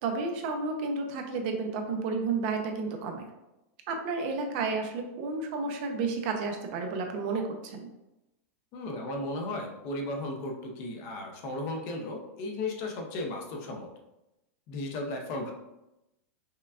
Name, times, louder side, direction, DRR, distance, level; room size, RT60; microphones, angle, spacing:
voice 1, 0.0-3.3 3.9-7.9, right 4 dB, 45° right, 3 dB, 0.6 m, -31 dB
voice 2, 8.7-13.9 14.7-15.5, left 2 dB, 40° left, 2 dB, 0.6 m, -35 dB
5.5 x 2.3 x 2.4 m, 0.93 s
supercardioid pair, 160°, 8 cm